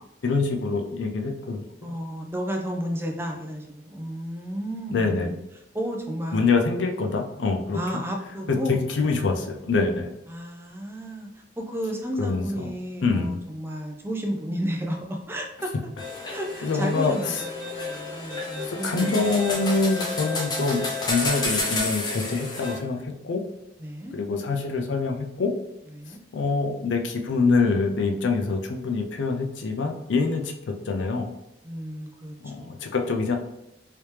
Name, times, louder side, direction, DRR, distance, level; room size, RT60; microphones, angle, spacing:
voice 1, 0.2-1.6 4.9-5.3 6.3-7.8 8.5-10.1 12.2-12.7 13.0-13.4 16.6-17.4 18.6-23.4 24.1-25.5 26.3-31.3 32.4-33.3, left 4 dB, 80° left, 3 dB, 0.5 m, -25 dB
voice 2, 1.8-5.4 5.7-6.5 7.7-8.8 10.3-11.3 11.6-15.7 16.3-19.2 23.8-24.1 26.0-26.2 31.6-32.8, equal, 15° right, 2 dB, 0.4 m, -32 dB
sound 1, 16.0-22.8, left 3 dB, 25° left, 0.7 m, -30 dB
3.3 x 2.8 x 3.2 m, 0.88 s
head